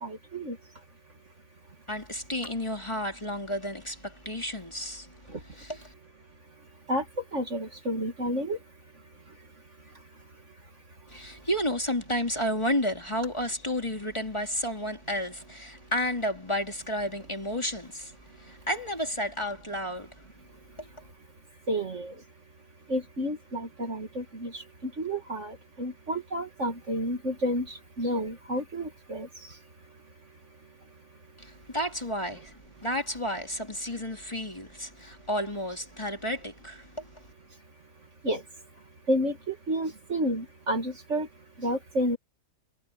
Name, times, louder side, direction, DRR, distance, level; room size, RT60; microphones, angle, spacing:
voice 1, 0.0-0.6 5.3-5.4 6.9-7.0 7.3-8.6 21.7-22.1 22.9-29.3 38.2-38.4 39.1-41.3 41.6-42.2, equal, 45° right, 2.4 m, -30 dB
voice 2, 1.9-5.9 11.1-20.2 20.8-20.9 31.4-32.5 32.8-37.2, equal, 15° left, 3.1 m, -32 dB
omnidirectional pair, 1.7 m